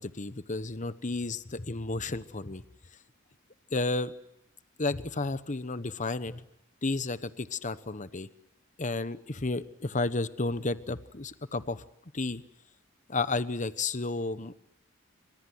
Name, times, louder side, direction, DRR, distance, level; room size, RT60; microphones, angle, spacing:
voice 1, 0.0-2.6 3.7-4.1 4.8-6.4 6.8-8.3 8.8-11.8 12.1-12.4 13.1-14.6, left 3 dB, 35° left, 13 dB, 1.1 m, -32 dB
28.0 x 25.5 x 7.9 m, 0.79 s
head